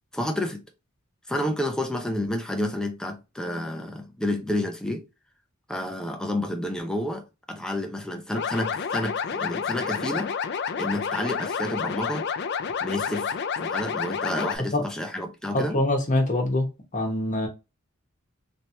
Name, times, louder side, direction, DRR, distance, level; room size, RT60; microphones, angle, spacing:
voice 1, 0.1-0.6 1.3-5.0 5.7-10.3 10.8-12.3 12.8-15.8, left 1 dB, 5° left, 0.6 m, -30 dB
sound 1, 8.3-14.6, left 6 dB, 55° left, 0.4 m, -29 dB
voice 2, 15.5-16.7 16.9-17.5, left 1 dB, 35° left, 1.1 m, -24 dB
3.2 x 2.9 x 2.7 m
head